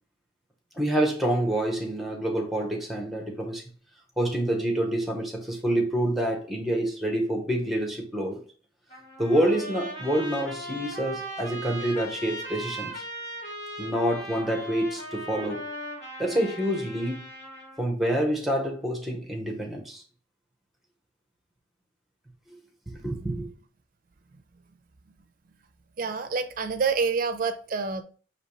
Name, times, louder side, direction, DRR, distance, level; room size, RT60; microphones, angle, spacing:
voice 1, 0.8-3.6 4.2-8.4 9.2-13.0 13.8-15.6 16.2-17.2 17.8-20.0 22.9-23.5, right 1 dB, ahead, 0.8 m, -27 dB
Trumpet, 8.9-17.8, right 1 dB, 35° left, 1.5 m, -38 dB
voice 2, 26.0-28.0, right 5 dB, 45° right, 0.5 m, -27 dB
5.1 x 3.0 x 3.0 m
head